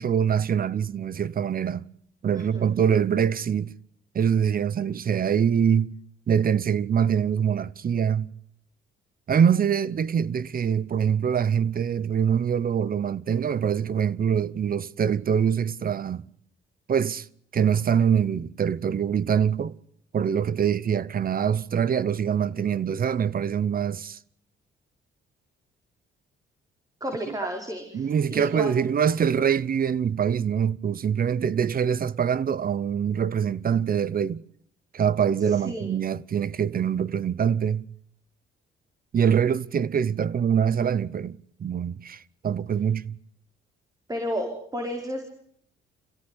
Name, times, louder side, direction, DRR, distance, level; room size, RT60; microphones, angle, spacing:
voice 1, 0.0-1.9 2.2-3.7 4.1-5.9 6.3-8.3 9.3-16.2 16.9-17.3 17.5-19.8 20.1-24.2 27.9-34.4 34.9-37.8 39.1-43.1, right 8 dB, 45° right, 0.9 m, -24 dB
voice 2, 2.3-2.7 27.0-28.7 35.5-36.0 44.1-45.2, equal, 20° right, 4.8 m, -32 dB
27.5 x 16.5 x 9.9 m
cardioid pair, 90°, 20 cm